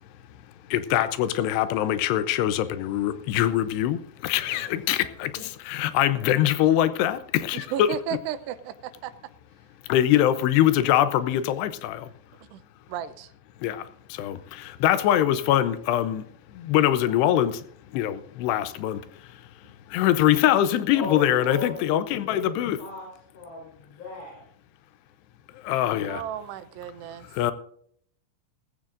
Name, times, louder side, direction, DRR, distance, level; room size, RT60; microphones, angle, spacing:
voice 1, 0.7-7.9 9.9-12.1 13.6-13.8 14.2-16.2 16.6-17.6 17.9-19.0 19.9-22.8 25.6-26.2 27.4-27.5, left 12 dB, 85° left, 13 dB, 2.9 m, -23 dB
voice 2, 4.4-4.8 20.9-21.8 22.2-22.4 22.8-23.1 23.3-24.4, left 3 dB, 40° left, -3 dB, 5.8 m, -36 dB
voice 3, 7.7-9.1 12.5-12.6 12.9-13.3 26.1-27.3, right 10 dB, 85° right, 12 dB, 2.9 m, -34 dB
18.0 x 15.0 x 2.6 m, 0.64 s
omnidirectional pair, 4.7 m